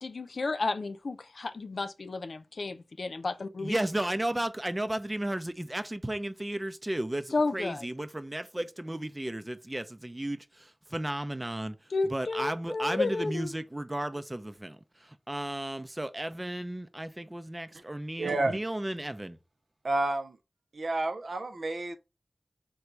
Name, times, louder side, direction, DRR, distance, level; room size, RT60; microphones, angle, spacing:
voice 1, 0.0-3.7 7.3-7.8 11.9-13.5, left 3 dB, 85° left, 0.4 m, -32 dB
voice 2, 3.6-19.4, right 1 dB, 25° right, 0.5 m, -34 dB
voice 3, 18.2-18.6 19.8-20.4 20.7-22.0, right 2 dB, 90° right, 0.5 m, -30 dB
3.9 x 2.2 x 4.5 m
wide cardioid pair, 50°, 0 cm